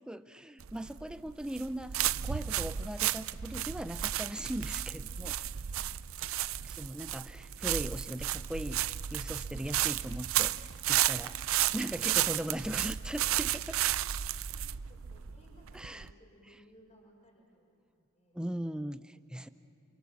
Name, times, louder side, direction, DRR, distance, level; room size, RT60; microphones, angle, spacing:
voice 1, 0.0-5.3 6.6-10.5 10.9-11.3 11.7-13.6 15.7-16.1 18.3-19.5, right 1 dB, 5° right, 11 dB, 0.6 m, -39 dB
sound 1, 0.6-16.1, right 12 dB, 70° right, 0.5 m, -33 dB
voice 2, 5.0-6.9 13.1-17.8 18.1-18.4 19.4-19.5, equal, 30° left, -1 dB, 6.3 m, -63 dB
29.0 x 28.5 x 7.2 m, 2.8 s
head